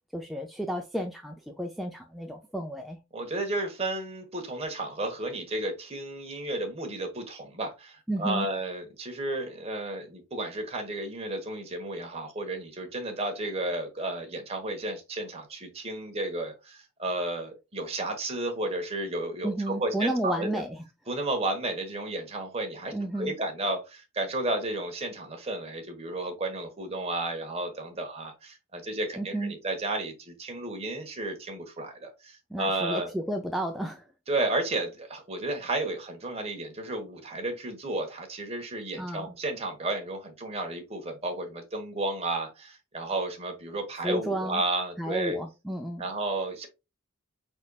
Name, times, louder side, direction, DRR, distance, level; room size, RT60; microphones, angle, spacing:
voice 1, 0.1-3.0 8.1-8.5 19.4-20.8 22.9-23.3 29.2-29.6 32.5-34.0 39.0-39.3 44.0-44.6 45.0-46.1, right 1 dB, ahead, 0.4 m, -32 dB
voice 2, 3.1-20.6 21.1-33.1 34.3-45.4 46.0-46.7, right 2 dB, 30° right, 1.4 m, -32 dB
5.2 x 4.2 x 2.4 m
head